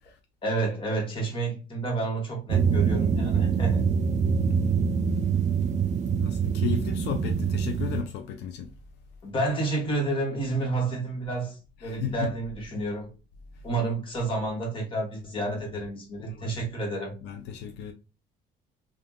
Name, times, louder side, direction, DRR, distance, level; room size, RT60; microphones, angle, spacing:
voice 1, 0.4-3.8 9.2-13.1 13.6-17.1, right 2 dB, 30° left, 1.3 m, -30 dB
sound 1, 2.5-8.0, right 6 dB, 45° right, 0.4 m, -24 dB
voice 2, 4.4-4.8 6.2-8.7 11.8-12.3 15.4-15.5 16.2-16.6 17.2-17.9, left 8 dB, 85° left, 0.4 m, -34 dB
3.4 x 2.4 x 2.3 m
cardioid pair, 110°, 17 cm